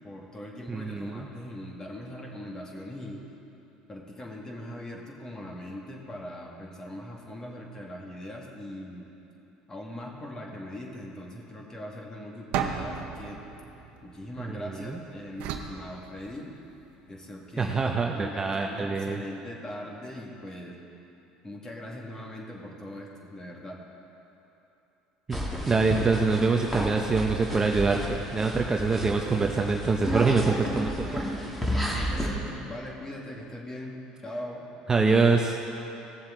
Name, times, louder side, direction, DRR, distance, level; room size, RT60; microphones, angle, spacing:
voice 1, 0.0-3.2 3.9-9.1 9.7-13.4 14.0-16.5 17.1-17.8 18.1-20.8 21.4-23.8 31.7-34.6, left 1 dB, 20° left, -1 dB, 2.1 m, -40 dB
voice 2, 0.7-1.3 14.4-15.0 17.6-19.2 25.3-25.4 25.7-31.3 34.9-35.6, right 4 dB, 25° right, 2 dB, 0.7 m, -25 dB
sound 1, 12.5-14.7 15.4-16.8, right 7 dB, 70° right, 0.9 m, -35 dB
sound 2, 25.3-32.3, equal, 5° left, 2.0 m, -32 dB
17.5 x 7.2 x 3.8 m, 3.0 s
supercardioid pair, 90°, 3 cm